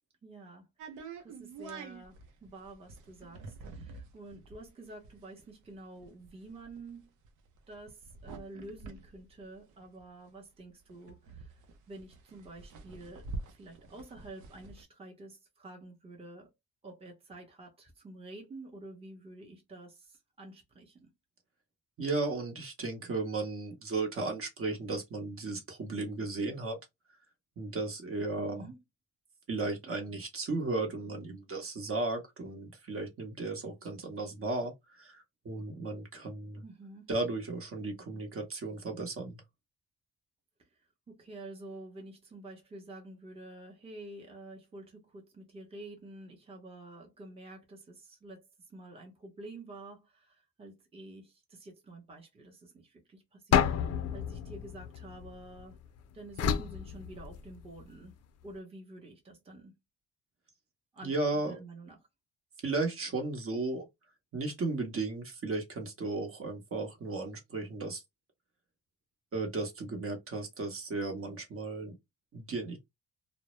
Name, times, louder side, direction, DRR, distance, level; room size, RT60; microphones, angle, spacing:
voice 1, 0.2-7.1 7.7-11.6 11.9-13.3 13.5-16.5 16.8-21.1 28.4-28.8 36.6-37.1 40.6-40.7 41.1-55.8 56.1-58.2 58.4-59.7 60.9-62.1, right 2 dB, 20° right, 0.8 m, -49 dB
sound 1, 0.8-10.3 10.6-10.7 10.9-14.8, right 3 dB, 85° right, 0.6 m, -47 dB
voice 2, 22.0-26.8 27.6-28.7 29.5-36.6 37.1-39.4 61.0-61.6 62.6-63.9 64.3-68.0 69.3-71.9 72.3-72.8, right 3 dB, 45° right, 0.9 m, -35 dB
sound 2, 53.5-55.7 56.4-57.8, left 8 dB, 55° left, 0.4 m, -30 dB
2.1 x 2.0 x 2.9 m
cardioid pair, 90°, 30 cm